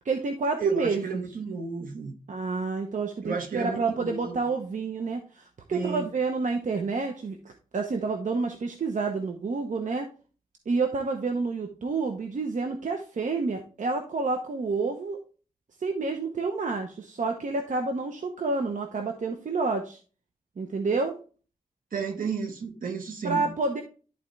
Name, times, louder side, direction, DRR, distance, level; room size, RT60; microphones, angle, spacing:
voice 1, 0.0-1.0 2.3-10.1 10.7-15.2 15.8-20.0 20.6-21.1 23.2-23.8, right 4 dB, 65° right, 4 dB, 0.9 m, -29 dB
voice 2, 0.6-2.1 3.2-4.4 5.7-6.1 21.9-23.5, right 5 dB, 80° right, 4 dB, 1.6 m, -32 dB
11.0 x 4.3 x 3.3 m, 0.37 s
wide cardioid pair, 95°, 14 cm